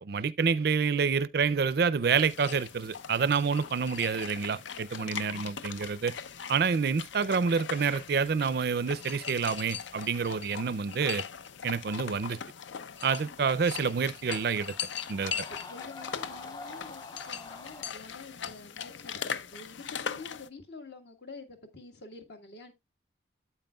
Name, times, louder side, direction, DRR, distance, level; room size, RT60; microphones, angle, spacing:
voice 1, 0.0-6.1 6.5-11.2 11.6-12.4 13.0-14.7 15.1-15.3, right 5 dB, 55° right, 0.4 m, -28 dB
sound 1, 2.2-20.5, left 7 dB, 80° left, 0.6 m, -40 dB
voice 2, 5.0-5.5 15.3-22.7, left 3 dB, 65° left, 1.7 m, -48 dB
sound 2, 13.8-18.0, left 2 dB, 20° left, 0.4 m, -47 dB
9.0 x 8.2 x 2.3 m
head